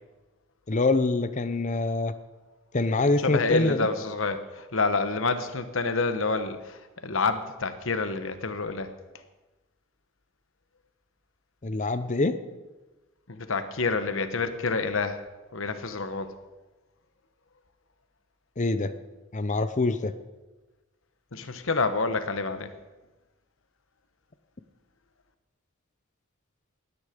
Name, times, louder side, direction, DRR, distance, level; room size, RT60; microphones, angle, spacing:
voice 1, 0.7-2.1 2.7-3.9 11.6-12.4 18.6-18.9 19.3-20.1, left 2 dB, 35° left, 12 dB, 0.7 m, -25 dB
voice 2, 3.2-8.9 13.3-15.2 15.5-16.3 21.3-22.7, left 3 dB, 65° left, 10 dB, 1.1 m, -28 dB
17.5 x 9.7 x 5.1 m, 1.2 s
head